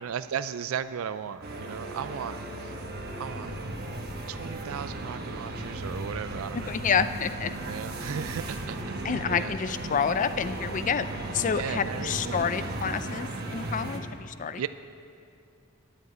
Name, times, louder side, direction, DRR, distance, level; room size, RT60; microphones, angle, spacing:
voice 1, 0.0-2.7 3.2-3.6 4.3-6.7 7.7-9.0 9.3-9.6 11.5-12.6 14.6-14.7, right 8 dB, 90° right, 13 dB, 0.4 m, -36 dB
sound 1, 1.4-14.0, right 1 dB, 50° right, 1.2 m, -36 dB
sound 2, 1.6-12.1, left 2 dB, 85° left, 4.0 m, -54 dB
sound 3, 2.8-12.5, equal, 10° right, 0.8 m, -48 dB
voice 2, 6.7-7.5 9.0-11.1 11.3-14.6, left 6 dB, 40° left, 12 dB, 0.4 m, -28 dB
10.5 x 7.8 x 9.2 m, 2.5 s
head